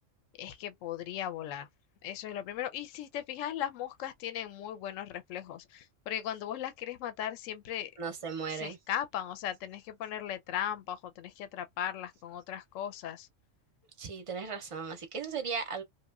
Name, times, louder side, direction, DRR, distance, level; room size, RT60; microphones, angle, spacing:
voice 1, 0.4-1.7 2.0-7.9 8.5-13.3, left 10 dB, 75° left, 0.9 m, -37 dB
voice 2, 8.0-8.8 14.0-15.8, right 5 dB, 40° right, 0.4 m, -36 dB
3.0 x 2.3 x 2.3 m
omnidirectional pair, 1.4 m